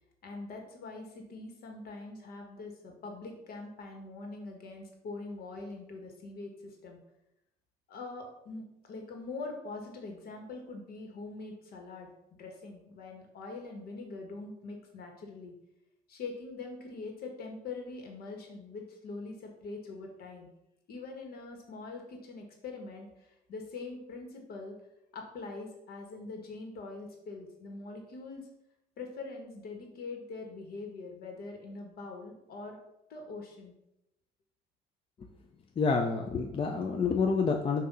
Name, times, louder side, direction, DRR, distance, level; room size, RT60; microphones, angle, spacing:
voice 1, 0.2-7.0 7.9-12.1 12.4-15.5 16.1-20.5 20.9-24.8 25.1-28.5 29.0-32.8 33.1-33.7, left 3 dB, 65° left, 2 dB, 1.6 m, -43 dB
voice 2, 35.8-37.8, left 5 dB, 30° left, 3 dB, 0.6 m, -28 dB
6.1 x 2.9 x 5.5 m, 0.84 s
cardioid pair, 110°, 17 cm